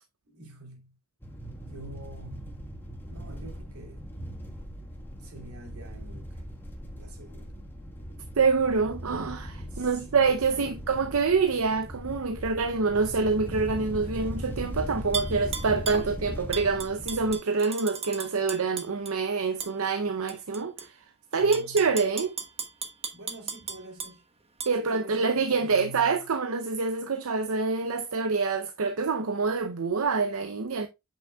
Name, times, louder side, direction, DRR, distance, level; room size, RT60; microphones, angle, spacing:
voice 1, 0.3-1.0 1.6-2.7 3.0-4.0 5.1-6.4 7.0-7.5 9.7-10.8 21.3-21.9 23.1-24.3 24.8-26.2, right 1 dB, 90° right, 3.0 m, -46 dB
sound 1, 1.2-17.4, equal, 10° left, 1.4 m, -39 dB
voice 2, 8.4-20.9 21.3-22.4 24.7-30.9, right 4 dB, 70° right, 0.6 m, -26 dB
Tap / Glass, 15.1-16.1 16.5-19.1 19.6-19.7 20.3-20.9 21.3-24.1 24.6-24.7, right 6 dB, 30° right, 1.1 m, -35 dB
8.1 x 5.9 x 2.3 m
head